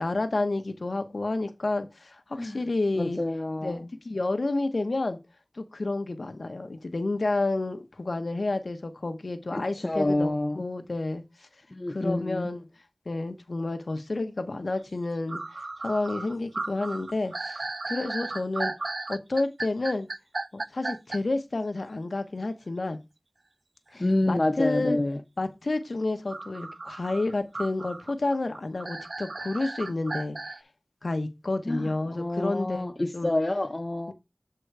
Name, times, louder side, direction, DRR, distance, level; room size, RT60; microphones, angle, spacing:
voice 1, 0.0-3.2 3.6-5.2 5.5-11.5 11.9-12.7 13.1-15.4 15.8-18.7 19.1-20.1 20.5-23.0 23.9-25.0 25.4-30.4 31.0-32.8 33.1-33.3, left 2 dB, 70° left, 0.9 m, -30 dB
voice 2, 3.0-3.9 9.5-10.6 11.7-12.5 24.0-25.2 31.7-34.1, left 1 dB, 40° left, 0.4 m, -28 dB
sound 1, 14.9-15.0 15.3-21.2 26.3-30.6, right 2 dB, 70° right, 0.3 m, -35 dB
7.9 x 3.8 x 4.7 m
wide cardioid pair, 60°, 0 cm